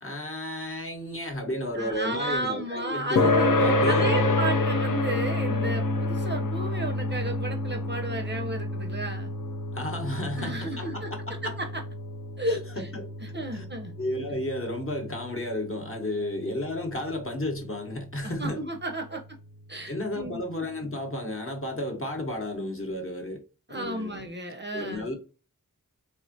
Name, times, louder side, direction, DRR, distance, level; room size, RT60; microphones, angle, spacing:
voice 1, 0.0-3.3 3.6-4.4 9.7-11.6 12.5-13.1 13.5-13.7 14.0-18.7 19.9-23.4 23.7-24.2 24.7-25.1, left 1 dB, 40° left, 0.9 m, -33 dB
voice 2, 1.7-9.3 10.3-11.1 11.4-11.8 12.4-12.9 13.2-13.9 18.2-19.2 19.7-20.4 23.7-25.1, right 1 dB, 30° right, 0.5 m, -33 dB
sound 1, 3.2-18.1, left 2 dB, 65° left, 0.5 m, -29 dB
3.4 x 2.1 x 2.6 m
wide cardioid pair, 45°, 35 cm